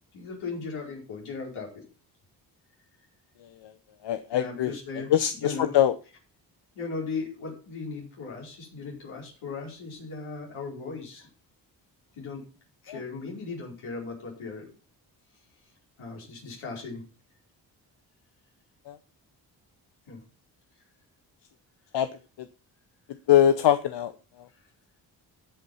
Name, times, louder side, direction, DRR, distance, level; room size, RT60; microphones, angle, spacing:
voice 1, 0.1-1.8 4.3-5.8 6.7-11.3 12.2-12.4 12.8-14.7 16.0-17.0 20.1-20.2, left 4 dB, 75° left, -2 dB, 4.9 m, -37 dB
voice 2, 4.0-4.7 5.1-5.9 12.9-13.0 18.9-19.0 21.9-22.1 23.3-24.1, left 11 dB, 60° left, 11 dB, 0.9 m, -22 dB
15.5 x 5.4 x 5.6 m, 0.36 s
hypercardioid pair, 40°, 48 cm